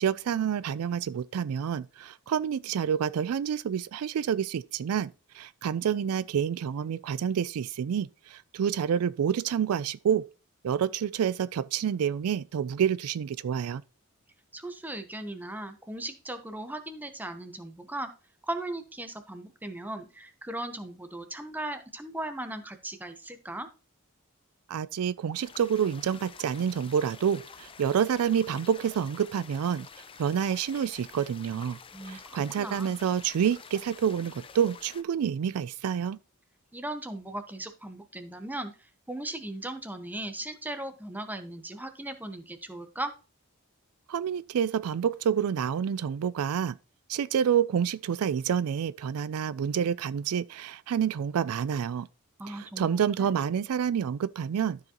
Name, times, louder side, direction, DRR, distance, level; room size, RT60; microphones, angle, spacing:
voice 1, 0.0-10.3 10.6-13.8 24.7-29.9 30.2-31.8 32.1-36.2 44.1-46.7 47.1-52.1 52.5-54.8, right 8 dB, 80° right, 0.4 m, -28 dB
voice 2, 14.5-18.1 18.4-23.7 31.9-32.9 36.7-43.1 52.4-53.4, right 1 dB, 10° right, 0.8 m, -38 dB
sound 1, 25.3-35.0, left 6 dB, 25° left, 0.5 m, -49 dB
12.5 x 4.8 x 2.9 m
head